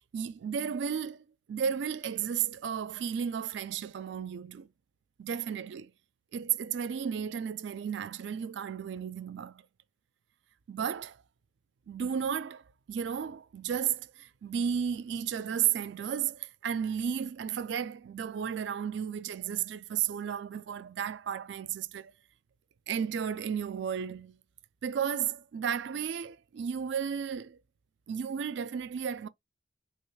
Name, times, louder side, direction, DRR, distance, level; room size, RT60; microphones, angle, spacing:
voice 1, 0.1-4.7 5.2-5.9 6.3-9.6 10.7-11.2 11.9-12.6 12.9-22.1 22.9-24.4 24.8-27.6 28.1-29.3, right 8 dB, 60° right, 0.3 m, -33 dB
3.1 x 2.8 x 3.2 m
head